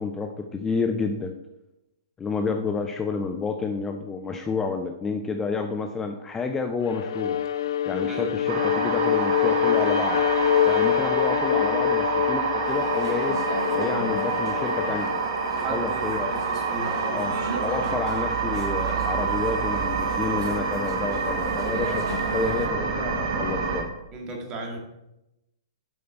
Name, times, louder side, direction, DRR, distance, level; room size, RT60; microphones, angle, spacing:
voice 1, 0.0-1.3 2.2-7.4 7.9-10.2 10.7-13.4 13.7-15.1 15.7-16.4 17.1-17.3 17.6-22.1 22.3-23.9, left 4 dB, 15° left, 5 dB, 0.6 m, -29 dB
Bowed string instrument, 6.8-15.2, left 11 dB, 70° left, 0.5 m, -25 dB
sound 1, 8.5-23.8, right 5 dB, 50° right, 1.9 m, -27 dB
sound 2, 12.6-22.7, right 2 dB, 70° right, 1.4 m, -38 dB
voice 2, 15.5-18.0 24.1-24.8, right 2 dB, 30° right, 1 dB, 1.9 m, -36 dB
7.8 x 5.2 x 4.4 m, 0.89 s
hypercardioid pair, 120°, 2 cm